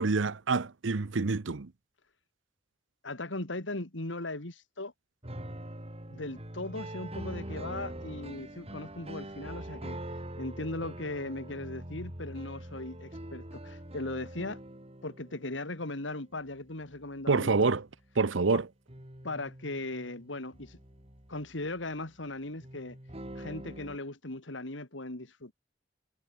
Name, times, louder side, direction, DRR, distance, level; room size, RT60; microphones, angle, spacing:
voice 1, 0.0-1.7 17.3-17.9 18.2-18.6, right 4 dB, 75° right, 0.8 m, -27 dB
voice 2, 3.0-4.9 6.1-14.6 15.0-17.7 18.5-18.6 19.2-20.8 21.3-23.0 23.3-25.5, left 2 dB, 70° left, 2.7 m, -38 dB
sound 1, 5.2-16.5 16.8-18.0 18.9-22.1 22.6-24.0, right 1 dB, 35° right, 4.8 m, -44 dB
head